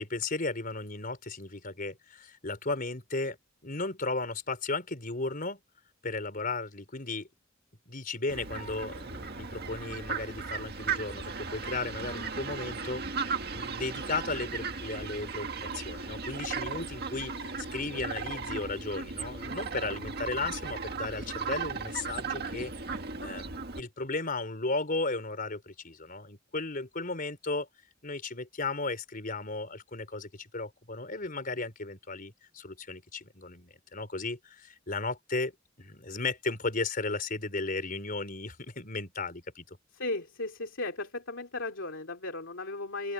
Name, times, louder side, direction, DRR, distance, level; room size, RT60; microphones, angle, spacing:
voice 1, 0.0-3.4 3.6-5.6 6.0-7.3 7.9-22.7 23.2-27.7 28.0-35.5 35.8-39.6, left 3 dB, 45° left, 4.5 m, -35 dB
Fowl, 8.3-23.8, right 5 dB, 55° right, 1.8 m, -36 dB
voice 2, 39.9-43.1, left 2 dB, 75° left, 2.5 m, -36 dB
open air
head